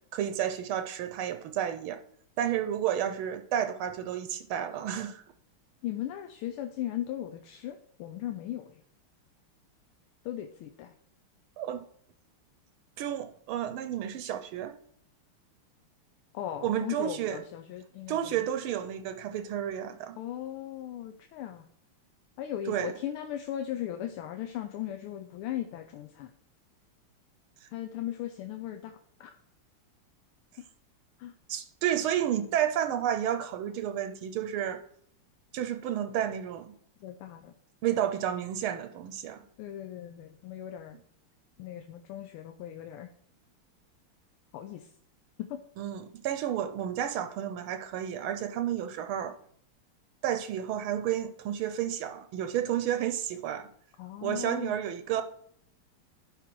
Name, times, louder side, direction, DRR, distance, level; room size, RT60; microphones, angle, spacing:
voice 1, 0.1-2.0 2.4-5.2 11.6-11.8 13.0-14.8 16.6-17.4 18.1-20.2 22.7-22.9 31.5-34.8 35.5-36.7 37.8-39.4 45.8-49.4 50.2-53.7 54.2-55.2, right 10 dB, 80° right, 1.4 m, -31 dB
voice 2, 5.8-8.7 10.2-10.9 16.3-18.4 20.2-21.6 22.4-26.3 27.7-29.3 30.6-30.7 31.2-31.3 37.0-37.5 39.6-41.0 41.6-43.1 44.5-44.9 45.4-45.6 54.0-54.9, left 11 dB, 80° left, 1.5 m, -38 dB
11.0 x 3.8 x 4.5 m
omnidirectional pair, 2.4 m